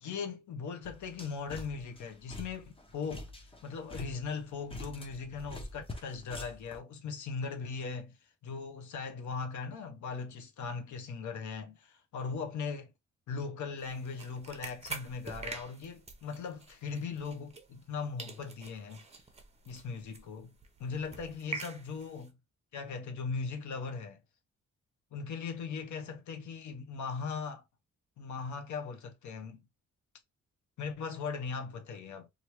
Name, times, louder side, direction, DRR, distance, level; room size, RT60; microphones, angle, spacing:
voice 1, 0.0-3.3 3.6-8.2 8.4-12.9 13.3-19.0 19.6-20.5 20.8-22.4 22.7-24.2 25.1-27.6 28.2-29.6 30.8-32.3, left 5 dB, 75° left, 0.7 m, -39 dB
sound 1, 0.8-6.8, left 1 dB, 20° left, 0.6 m, -46 dB
sound 2, 13.8-17.9 18.2-22.3, right 4 dB, 20° right, 0.7 m, -46 dB
3.1 x 2.6 x 2.9 m
cardioid pair, 120°, 30 cm